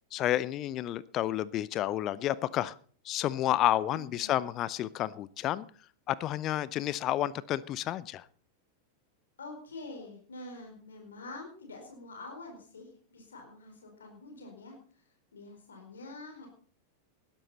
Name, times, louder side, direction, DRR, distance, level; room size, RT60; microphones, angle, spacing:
voice 1, 0.1-2.7 3.0-5.6 6.1-8.3, left 13 dB, 35° left, 20 dB, 0.6 m, -30 dB
voice 2, 3.9-4.3 9.4-16.5, left 2 dB, 70° left, 2 dB, 4.6 m, -46 dB
20.0 x 12.0 x 4.2 m, 0.43 s
figure-of-eight pair, 90°, 0 cm